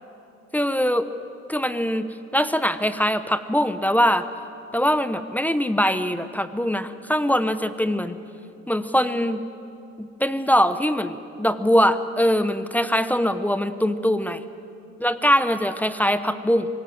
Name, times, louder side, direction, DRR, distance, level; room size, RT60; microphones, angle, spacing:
voice 1, 0.5-1.1 1.5-4.3 4.7-8.2 8.7-9.4 10.0-14.4 15.0-16.7, equal, 5° left, 11 dB, 0.9 m, -22 dB
25.0 x 17.0 x 7.8 m, 2.7 s
cardioid pair, 90°, 30 cm